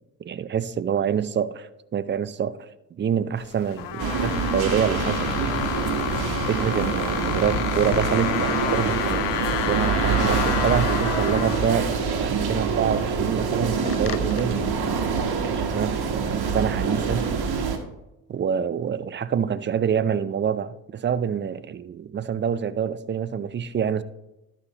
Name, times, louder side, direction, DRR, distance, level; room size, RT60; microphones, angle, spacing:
voice 1, 0.2-2.6 2.9-5.6 6.5-11.9 12.2-14.6 15.4-17.3 18.3-24.0, right 8 dB, 25° right, 0.4 m, -26 dB
sound 1, 3.4-14.4, left 16 dB, 65° left, 0.5 m, -31 dB
sound 2, 4.0-17.8, right 5 dB, 50° right, 1.4 m, -25 dB
12.0 x 5.8 x 3.0 m
hypercardioid pair, 50°, 47 cm